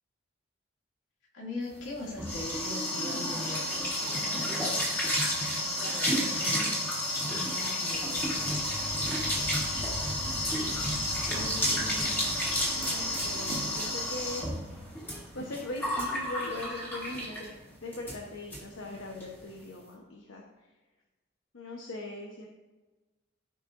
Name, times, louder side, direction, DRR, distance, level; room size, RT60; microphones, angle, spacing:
voice 1, 1.3-4.8 5.7-6.9 7.2-8.6, left 2 dB, 70° left, -3 dB, 2.5 m, -41 dB
Se lava las manos, 1.8-17.5 17.9-18.2 18.5-18.6 18.9-19.3, left 1 dB, 10° left, 2.2 m, -31 dB
sound 1, 7.9-18.9, left 1 dB, 45° left, 0.9 m, -45 dB
voice 2, 11.3-12.2 12.8-14.5 15.0-17.5 17.8-20.7 21.5-22.5, left 2 dB, 85° left, -1 dB, 1.1 m, -40 dB
15.0 x 5.6 x 2.6 m, 1.2 s
head